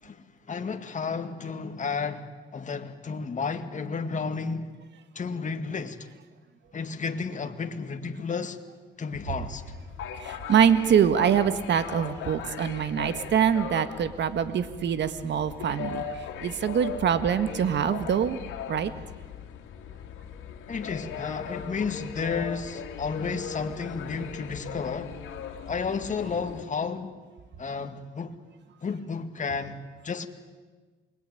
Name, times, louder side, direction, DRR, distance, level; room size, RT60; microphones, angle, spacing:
voice 1, 0.0-4.7 5.1-6.1 6.7-8.6 9.0-9.6 20.7-25.2 25.7-27.2 27.6-28.3 28.8-30.3, left 5 dB, 40° left, 2.3 m, -32 dB
sound 1, 9.1-26.6, left 8 dB, 85° left, 2.6 m, -39 dB
voice 2, 10.2-18.4 18.7-18.9, right 8 dB, 65° right, 1.7 m, -24 dB
27.5 x 21.5 x 9.3 m
cardioid pair, 90°, 20 cm